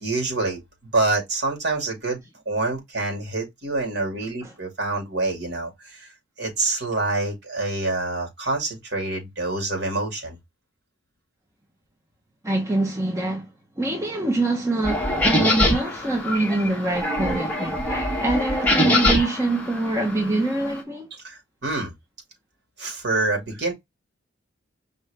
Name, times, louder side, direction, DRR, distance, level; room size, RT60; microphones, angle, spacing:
voice 1, 0.0-0.6 0.9-2.2 2.5-6.1 6.4-10.4 18.9-19.3 21.2-21.9 22.8-23.7, right 2 dB, 55° right, 2.2 m, -26 dB
voice 2, 12.4-13.5 13.8-21.1, right 2 dB, 15° right, 1.0 m, -25 dB
sound 1, 14.8-20.7, left 1 dB, 5° left, 1.2 m, -24 dB
5.3 x 2.6 x 3.4 m
head